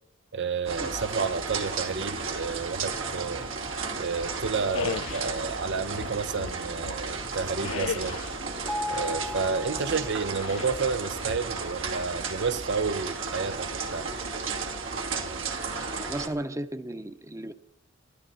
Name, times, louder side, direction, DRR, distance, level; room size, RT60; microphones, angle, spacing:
voice 1, 0.3-3.5 4.0-8.2 8.9-14.1, right 5 dB, 60° right, 0.7 m, -31 dB
sound 1, 0.7-16.3, right 4 dB, 80° right, 2.6 m, -34 dB
sound 2, 4.7-5.4 5.9-7.1 7.6-8.4 10.3-10.8 11.2-11.9, left 6 dB, 80° left, 0.5 m, -36 dB
Mallet percussion, 8.7-10.7, left 2 dB, 5° left, 0.6 m, -36 dB
voice 2, 16.0-17.5, right 1 dB, 15° right, 0.9 m, -34 dB
24.5 x 12.5 x 4.2 m
head